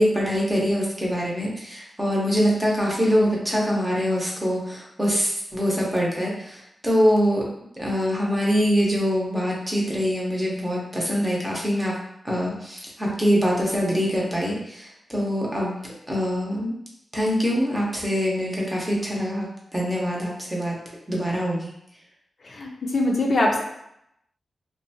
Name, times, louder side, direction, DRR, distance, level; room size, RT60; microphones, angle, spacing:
voice 1, 0.0-7.5 7.8-12.0 12.2-16.7 17.1-19.5 19.7-20.8 21.1-21.7, equal, 15° right, -3 dB, 0.7 m, -24 dB
voice 2, 22.5-23.6, left 1 dB, 60° left, -1 dB, 0.4 m, -22 dB
2.5 x 2.2 x 2.7 m, 0.78 s
wide cardioid pair, 80°, 0 cm